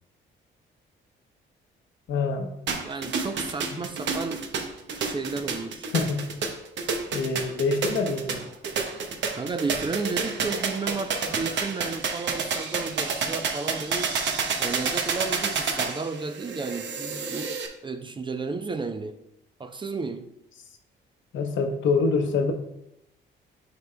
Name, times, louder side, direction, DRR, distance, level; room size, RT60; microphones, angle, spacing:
voice 1, 2.1-2.5 5.9-6.3 7.1-8.5 21.3-22.5, left 4 dB, 75° left, 5 dB, 0.9 m, -25 dB
sound 1, 2.7-17.7, right 5 dB, 65° right, 0.8 m, -29 dB
voice 2, 2.8-4.4 5.0-5.9 9.4-14.2 14.6-17.6 17.8-19.2 19.6-20.3, right 4 dB, 25° right, 9 dB, 0.4 m, -33 dB
9.5 x 4.4 x 2.2 m, 0.82 s
cardioid pair, 90°, 20 cm